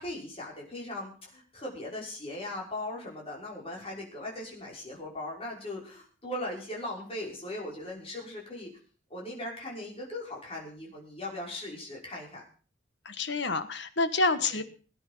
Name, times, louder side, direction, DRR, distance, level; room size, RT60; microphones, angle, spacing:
voice 1, 0.0-8.7 9.1-12.4 14.4-14.6, left 1 dB, 30° left, -3 dB, 5.5 m, -39 dB
voice 2, 13.0-14.6, left 3 dB, 65° left, 11 dB, 1.4 m, -28 dB
18.0 x 9.8 x 5.6 m, 0.40 s
head